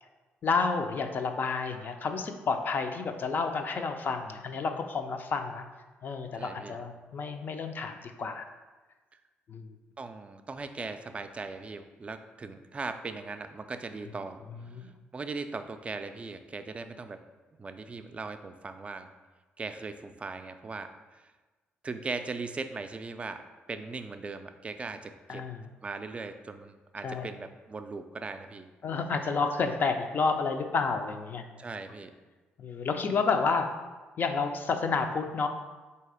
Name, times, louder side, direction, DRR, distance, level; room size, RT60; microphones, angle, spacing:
voice 1, 0.4-5.6 6.0-8.5 9.5-9.7 14.7-14.9 25.3-25.6 27.0-27.3 28.8-31.5 32.6-33.7 34.2-35.5, left 4 dB, 50° left, 6 dB, 0.4 m, -30 dB
voice 2, 6.3-6.8 9.1-9.2 10.0-17.2 17.6-19.1 19.6-21.2 21.8-23.4 23.7-25.4 25.8-28.7 31.6-32.2, right 4 dB, 30° right, 8 dB, 0.3 m, -39 dB
4.0 x 2.8 x 4.7 m, 1.3 s
cardioid pair, 85°, 4 cm